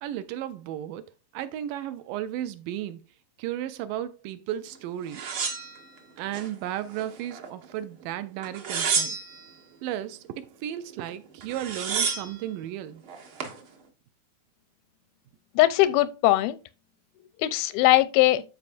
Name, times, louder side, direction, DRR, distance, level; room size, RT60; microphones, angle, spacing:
voice 1, 0.0-1.0 1.3-3.0 3.4-5.3 6.2-9.2 9.8-13.0, right 12 dB, 85° right, 1.9 m, -34 dB
sound 1, 5.1-6.5 6.9-7.7 8.4-9.5 11.1-11.2 11.4-12.4 13.1-13.6, right 5 dB, 65° right, 1.3 m, -30 dB
voice 2, 15.6-16.6 17.4-18.4, left 16 dB, 85° left, 2.4 m, -20 dB
13.0 x 4.8 x 2.5 m
omnidirectional pair, 4.3 m